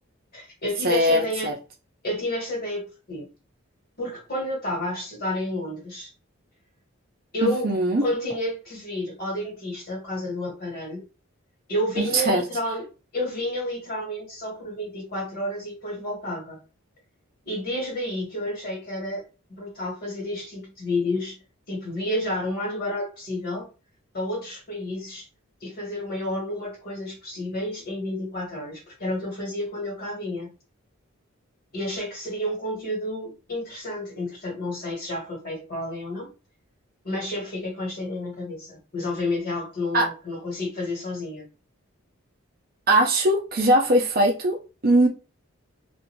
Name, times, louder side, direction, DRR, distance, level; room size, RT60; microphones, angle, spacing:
voice 1, 0.3-1.5 2.0-3.3 4.0-6.1 7.3-7.7 8.0-11.0 11.7-12.8 13.1-16.6 17.4-19.2 19.5-21.4 21.7-23.7 24.1-25.3 25.6-30.5 31.7-36.3 37.0-41.4, left 1 dB, 45° left, 1.4 m, -30 dB
voice 2, 0.8-1.5 7.4-8.0 12.0-12.4 39.9-40.1 42.9-45.1, right 1 dB, 40° right, 0.5 m, -21 dB
2.5 x 2.4 x 3.0 m
head